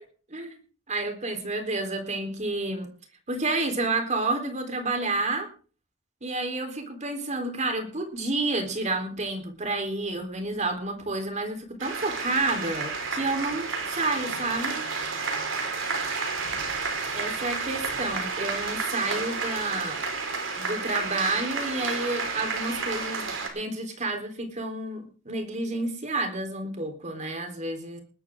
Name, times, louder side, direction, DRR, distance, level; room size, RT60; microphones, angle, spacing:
voice 1, 0.9-2.9 3.3-5.5 6.2-14.8 17.1-20.0 20.6-28.0, right 2 dB, 40° right, 5 dB, 4.0 m, -30 dB
sound 1, 11.8-23.5, right 4 dB, 85° right, 4.9 m, -31 dB
19.5 x 12.5 x 3.8 m, 0.38 s
head